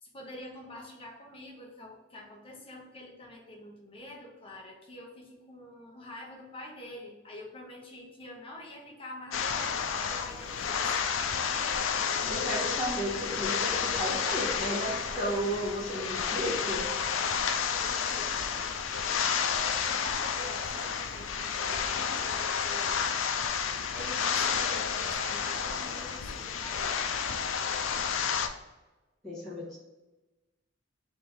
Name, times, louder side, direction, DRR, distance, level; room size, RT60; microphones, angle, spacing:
voice 1, 0.0-11.0 17.8-18.4 19.9-22.9 23.9-26.9, left 1 dB, 30° left, -1 dB, 1.0 m, -46 dB
sound 1, 9.3-28.5, left 6 dB, 80° left, 0.4 m, -31 dB
voice 2, 12.3-16.9 29.2-29.8, equal, ahead, -9 dB, 1.5 m, -33 dB
3.5 x 3.0 x 4.4 m, 1.1 s
head